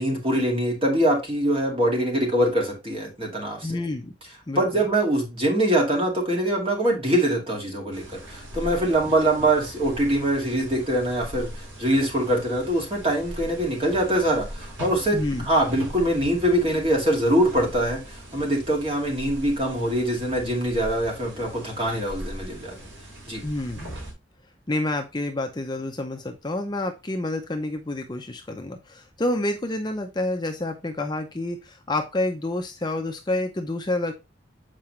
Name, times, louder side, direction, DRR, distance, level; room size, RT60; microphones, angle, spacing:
voice 1, 0.0-3.8 4.6-15.2 15.4-22.8 23.3-23.4, right 1 dB, 30° right, 2.2 m, -23 dB
voice 2, 3.6-4.1 4.5-4.6 15.1-15.5 23.4-23.9 24.7-34.1, left 2 dB, 20° left, 0.6 m, -28 dB
sound 1, 7.9-24.1, equal, 80° right, 4.0 m, -40 dB
7.5 x 4.8 x 3.2 m
head